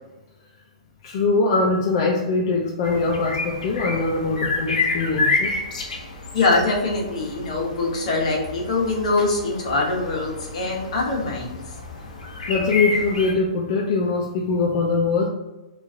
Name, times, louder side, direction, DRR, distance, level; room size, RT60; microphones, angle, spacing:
voice 1, 1.0-5.6 12.5-15.3, left 3 dB, 40° left, -1 dB, 0.4 m, -22 dB
sound 1, 2.8-13.3, left 3 dB, 90° left, 0.7 m, -29 dB
voice 2, 6.3-11.5, left 3 dB, 60° left, -2 dB, 1.0 m, -23 dB
3.0 x 2.5 x 3.7 m, 1.0 s
hypercardioid pair, 160°, 4 cm